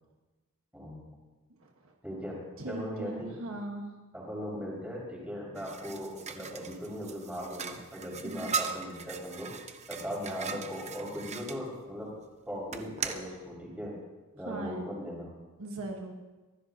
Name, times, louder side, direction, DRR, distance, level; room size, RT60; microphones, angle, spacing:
voice 1, 2.0-3.3 4.1-9.5 9.9-12.1 12.5-14.0 14.3-15.3, equal, 5° right, -4 dB, 5.2 m, -38 dB
voice 2, 2.6-3.9 8.2-8.5 14.5-14.8 15.6-16.1, right 2 dB, 65° right, 1 dB, 1.4 m, -39 dB
sound 1, 5.6-11.6 12.7-13.3, right 5 dB, 30° right, 0.8 m, -39 dB
23.5 x 15.0 x 2.9 m, 1.2 s
head